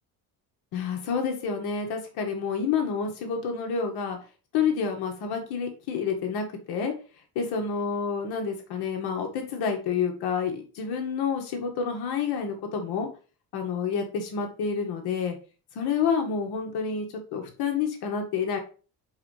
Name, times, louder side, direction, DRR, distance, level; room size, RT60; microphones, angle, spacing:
voice 1, 0.7-4.2 4.5-6.9 7.4-13.1 13.5-15.4 15.8-18.6, left 6 dB, 85° left, 3 dB, 2.2 m, -29 dB
5.0 x 5.0 x 4.9 m, 0.35 s
cardioid pair, 145°, 38 cm